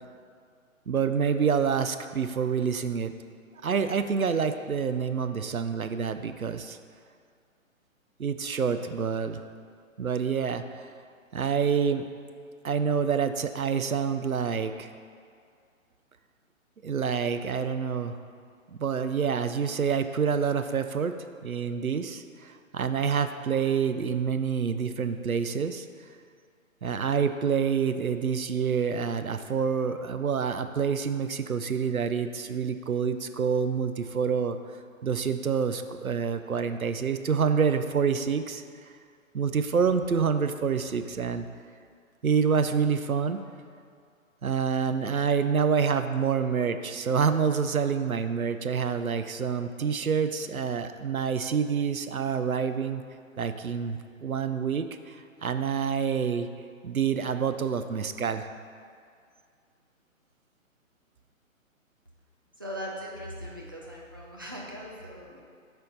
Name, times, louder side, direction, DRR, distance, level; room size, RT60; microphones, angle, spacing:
voice 1, 0.9-3.1 3.6-6.8 8.2-9.4 10.0-10.9 11.3-12.0 12.6-14.9 16.8-18.2 18.7-21.1 21.4-25.9 26.8-34.6 35.0-38.6 39.3-41.5 42.2-43.4 44.4-53.0 53.4-56.5 56.8-58.5, right 6 dB, 85° right, 9 dB, 0.6 m, -27 dB
voice 2, 62.6-65.4, equal, 15° right, -4 dB, 0.4 m, -39 dB
8.1 x 4.4 x 5.3 m, 2.2 s
figure-of-eight pair, 135°, 41 cm